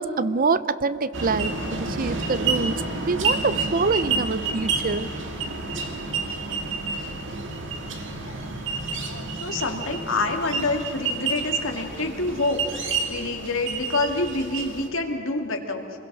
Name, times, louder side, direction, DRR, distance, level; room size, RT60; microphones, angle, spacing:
voice 1, 0.0-1.5 1.8-5.1, right 4 dB, 45° right, 15 dB, 0.6 m, -25 dB
sound 1, 1.1-14.9, right 4 dB, 60° right, 2.1 m, -29 dB
voice 2, 9.1-15.8, left 2 dB, 70° left, 2 dB, 2.5 m, -27 dB
28.0 x 21.5 x 6.3 m, 2.8 s
head